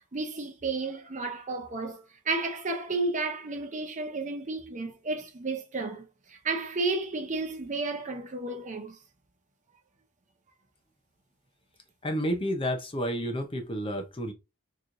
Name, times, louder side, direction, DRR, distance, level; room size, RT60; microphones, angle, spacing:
voice 1, 0.1-9.0, right 3 dB, 35° right, 0.7 m, -32 dB
voice 2, 12.0-14.3, equal, 25° left, 0.7 m, -30 dB
4.2 x 3.0 x 2.5 m
head